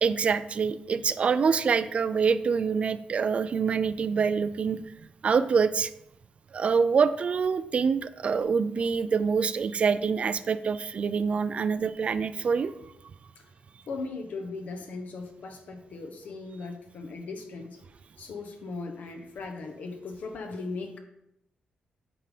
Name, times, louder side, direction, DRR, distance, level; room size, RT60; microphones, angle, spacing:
voice 1, 0.0-4.8 5.2-5.9 6.5-12.7, right 5 dB, 45° right, 13 dB, 0.4 m, -25 dB
voice 2, 13.9-17.8 18.2-21.0, left 3 dB, 70° left, 5 dB, 0.9 m, -38 dB
8.7 x 3.7 x 4.9 m, 0.81 s
wide cardioid pair, 130°, 3 cm